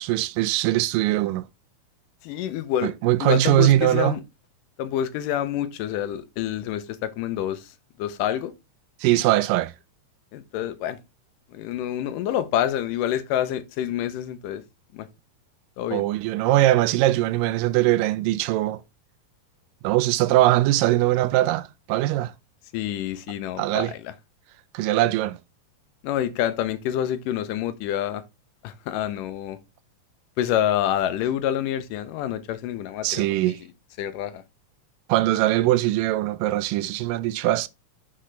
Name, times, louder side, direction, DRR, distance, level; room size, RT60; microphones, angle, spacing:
voice 1, 0.0-1.5 2.8-4.2 9.0-9.7 15.9-18.8 19.8-22.3 23.6-23.9 24.7-25.4 33.0-33.6 35.1-37.7, right 15 dB, 90° right, 2.2 m, -21 dB
voice 2, 2.2-2.9 3.2-4.2 4.8-7.6 8.0-8.5 10.3-11.0 11.5-14.6 14.9-15.1 15.8-16.0 22.7-24.1 26.0-28.2 28.6-29.6 30.4-33.6 34.0-34.4, left 11 dB, 80° left, 2.3 m, -27 dB
6.4 x 5.8 x 3.2 m
omnidirectional pair, 3.8 m